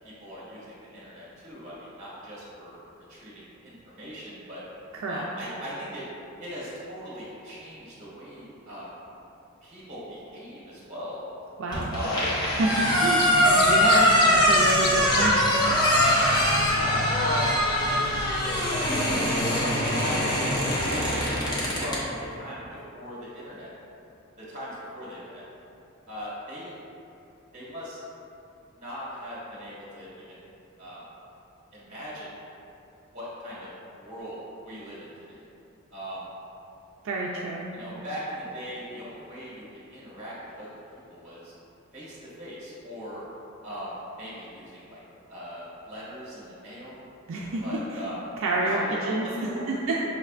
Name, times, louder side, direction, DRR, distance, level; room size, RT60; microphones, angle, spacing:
voice 1, 0.0-4.6 5.1-6.0 6.4-8.9 9.6-11.2 11.9-12.3 12.6-12.8 16.6-18.0 20.0-21.2 21.8-23.7 24.4-25.5 26.1-26.8 27.5-28.0 28.7-30.4 30.8-31.0 31.7-32.3 33.1-33.7 34.0-34.4 34.6-35.4 35.9-36.3 37.1-37.2 37.7-41.6 41.9-43.2 43.6-45.0 45.3-47.0 47.6-48.2 48.6-49.9, equal, 35° right, -8 dB, 1.5 m, -38 dB
voice 2, 4.9-5.2 11.6-11.9 12.6-15.4 37.0-38.0 47.3-47.8 48.4-50.0, right 2 dB, 65° right, -3 dB, 0.4 m, -29 dB
sound 1, 11.7-22.0, equal, 20° left, 0.8 m, -23 dB
sound 2, 11.9-21.8, left 3 dB, 45° left, 0.3 m, -33 dB
5.6 x 3.2 x 2.4 m, 2.8 s
head